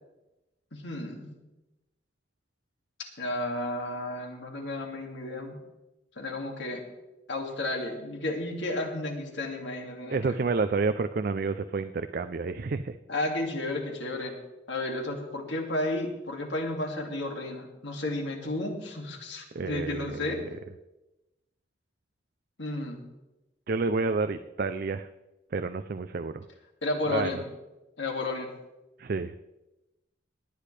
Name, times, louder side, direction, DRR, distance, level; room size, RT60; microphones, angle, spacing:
voice 1, 0.7-1.4 3.2-5.6 6.2-6.8 7.3-10.3 13.1-14.4 14.7-20.4 22.6-23.0 26.8-27.4 28.0-28.5, left 2 dB, 70° left, 2 dB, 2.3 m, -32 dB
voice 2, 10.1-13.0 19.5-20.4 23.7-25.1 25.5-26.5 27.1-27.3 29.0-29.3, right 4 dB, 50° right, 9 dB, 0.4 m, -29 dB
18.5 x 10.0 x 3.3 m, 1.0 s
head